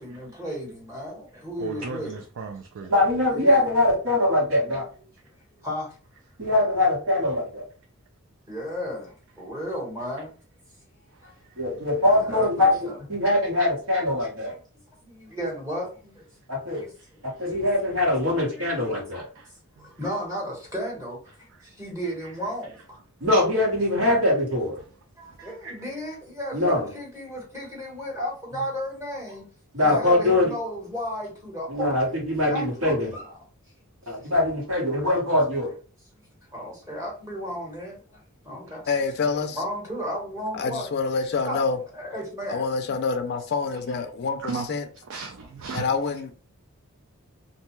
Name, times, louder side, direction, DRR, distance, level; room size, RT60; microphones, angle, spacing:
voice 1, 0.0-2.1 3.3-3.6 5.5-5.9 8.5-10.3 11.2-11.3 12.1-13.0 14.4-14.6 15.0-16.3 16.7-17.7 18.5-18.7 19.1-19.2 19.8-23.0 23.9-24.0 25.2-29.4 29.8-32.1 32.4-33.3 34.2-34.3 36.5-38.9 39.2-40.9 41.4-41.6 41.9-42.6 43.7-43.8, equal, 15° right, 1.1 m, -34 dB
voice 2, 1.6-2.9 11.1-11.9 16.7-16.8 17.3-17.5 19.3-20.1 21.5-21.7 22.0-22.3 25.2-25.9 44.4-44.7 45.0-45.9, right 5 dB, 55° right, 0.3 m, -38 dB
voice 3, 2.9-4.9 6.4-7.6 11.6-14.5 16.5-16.8 17.2-19.3 23.2-24.8 26.5-26.9 29.7-30.5 31.7-33.1 34.1-35.7, left 1 dB, 80° right, 1.4 m, -22 dB
voice 4, 38.9-39.6 40.5-41.8 42.5-44.8 45.7-46.3, left 4 dB, 50° left, 0.4 m, -27 dB
2.6 x 2.2 x 3.0 m
head